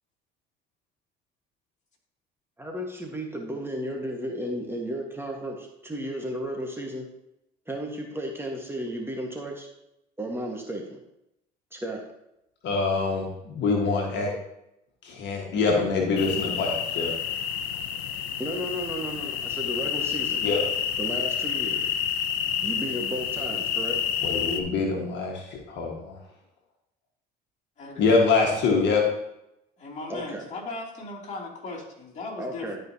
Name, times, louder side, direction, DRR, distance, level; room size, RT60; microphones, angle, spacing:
voice 1, 2.6-7.1 7.7-9.7 10.2-11.0 11.7-12.0 18.4-20.4 21.0-21.9 22.6-24.0 30.1-30.4 32.4-32.8, equal, 10° right, 0 dB, 1.6 m, -33 dB
voice 2, 12.6-14.3 15.0-17.1 20.4-20.6 24.2-26.1 28.0-29.0, left 4 dB, 60° left, 0 dB, 1.7 m, -24 dB
sound 1, 16.2-24.6, left 8 dB, 80° left, 0.7 m, -29 dB
voice 3, 29.8-32.7, left 3 dB, 35° left, -4 dB, 3.1 m, -38 dB
12.0 x 5.2 x 2.9 m, 0.84 s
hypercardioid pair, 70°, 20 cm